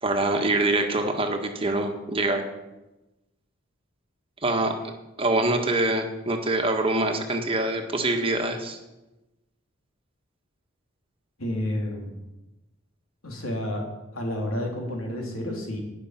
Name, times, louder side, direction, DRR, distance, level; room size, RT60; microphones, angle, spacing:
voice 1, 0.0-2.4 4.4-4.7 5.2-8.8, right 2 dB, 25° right, 4 dB, 1.5 m, -24 dB
voice 2, 11.4-12.2 13.2-13.8 14.1-15.8, left 1 dB, 80° left, 0 dB, 3.3 m, -30 dB
18.5 x 6.6 x 5.9 m, 1.0 s
head